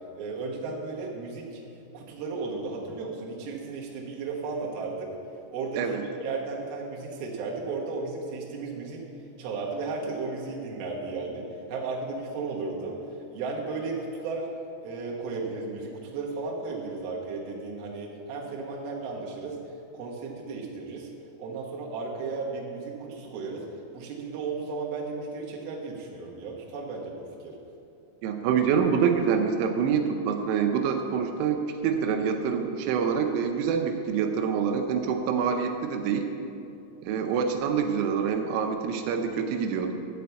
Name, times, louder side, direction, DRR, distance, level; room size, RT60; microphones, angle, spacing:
voice 1, 0.2-1.6 1.9-5.1 5.5-5.8 6.2-9.0 9.4-13.0 13.3-14.5 14.8-19.6 19.9-21.1 21.4-23.6 23.9-27.6, right 4 dB, 65° right, -3 dB, 2.6 m, -34 dB
voice 2, 28.2-36.3 37.0-39.9, right 6 dB, 85° right, 4 dB, 3.2 m, -26 dB
12.0 x 4.2 x 8.2 m, 2.6 s
omnidirectional pair, 5.6 m